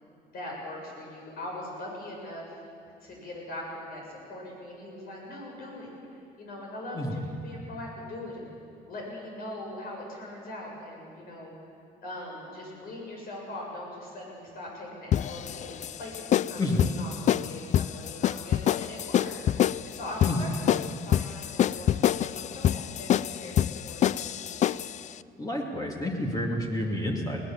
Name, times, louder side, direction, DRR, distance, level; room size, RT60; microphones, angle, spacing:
voice 1, 0.3-2.5 3.0-5.9 6.4-8.5 8.9-11.5 12.0-19.3 19.8-24.6, left 1 dB, 60° left, -2 dB, 7.3 m, -41 dB
sound 1, 15.1-25.0, left 10 dB, 45° left, 0.4 m, -26 dB
voice 2, 25.4-27.4, left 1 dB, 20° left, 0 dB, 2.6 m, -29 dB
21.0 x 18.5 x 7.4 m, 2.4 s
cardioid pair, 110°, 17 cm